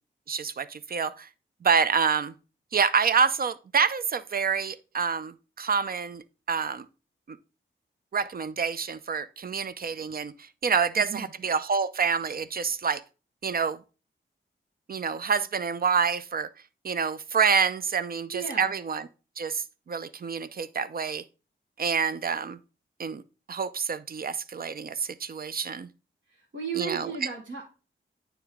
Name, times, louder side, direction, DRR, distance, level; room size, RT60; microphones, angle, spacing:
voice 1, 0.3-1.3 1.6-2.3 2.7-6.2 6.5-6.9 7.3-7.4 8.1-10.3 10.6-13.0 13.4-13.8 14.9-16.5 16.8-19.1 19.4-21.2 21.8-22.6 23.0-23.2 23.5-25.9 26.8-27.1, right 6 dB, 45° right, 0.5 m, -27 dB
voice 2, 11.0-11.3 18.3-18.7 26.3-27.7, right 7 dB, 65° right, 1.2 m, -35 dB
9.1 x 3.4 x 3.6 m
cardioid pair, 50°, 21 cm